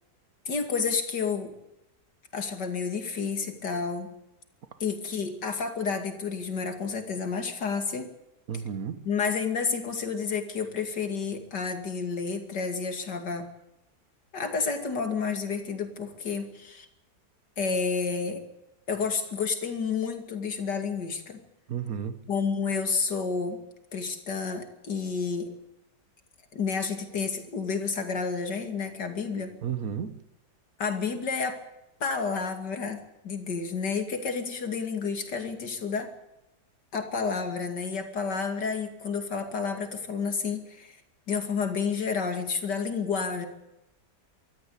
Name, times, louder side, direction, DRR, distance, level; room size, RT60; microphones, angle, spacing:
voice 1, 0.5-1.5 2.3-4.1 4.8-8.1 9.0-13.5 14.3-16.9 17.6-18.4 18.9-21.4 22.3-23.6 23.9-25.5 26.5-29.5 30.8-31.6 32.0-36.1 36.9-41.0 41.3-43.5, left 5 dB, 85° left, 3.1 m, -30 dB
voice 2, 8.5-9.0 21.7-22.2 29.6-30.2, right 7 dB, 60° right, 1.7 m, -32 dB
24.5 x 14.0 x 8.5 m
omnidirectional pair, 1.8 m